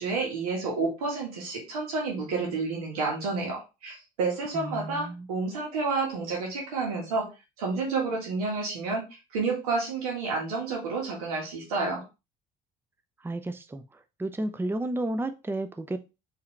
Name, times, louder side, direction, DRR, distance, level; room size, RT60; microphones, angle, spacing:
voice 1, 0.0-7.3 7.6-12.0, right 3 dB, 90° right, -1 dB, 1.7 m, -30 dB
voice 2, 4.5-5.3 13.2-13.8 14.2-16.0, right 1 dB, 10° right, 9 dB, 0.6 m, -32 dB
4.6 x 3.3 x 3.2 m, 0.28 s
hypercardioid pair, 60°, 19 cm